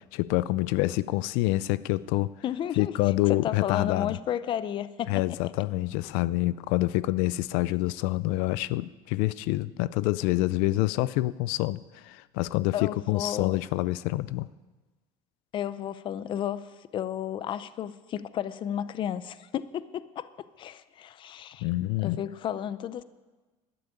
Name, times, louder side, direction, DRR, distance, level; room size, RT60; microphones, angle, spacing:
voice 1, 0.0-2.3 2.8-4.2 5.1-14.5 21.6-22.2, left 18 dB, 85° left, 17 dB, 0.5 m, -27 dB
voice 2, 2.4-2.9 3.2-5.1 12.7-13.6 15.5-16.6 16.9-20.3 20.6-21.7 22.0-23.0, left 10 dB, 35° left, 15 dB, 0.5 m, -32 dB
12.0 x 12.0 x 8.7 m, 1.3 s
cardioid pair, 155°, 15 cm